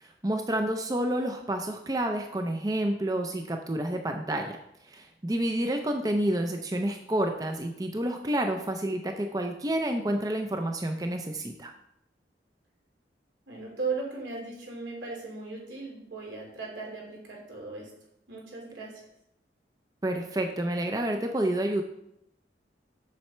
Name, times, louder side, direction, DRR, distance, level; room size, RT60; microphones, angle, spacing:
voice 1, 0.0-4.6 4.9-11.7 20.0-21.8, right 1 dB, 20° right, 4 dB, 0.5 m, -29 dB
voice 2, 13.5-17.9 18.3-18.9, right 4 dB, 85° right, -2 dB, 3.2 m, -37 dB
7.4 x 6.8 x 4.4 m, 0.79 s
head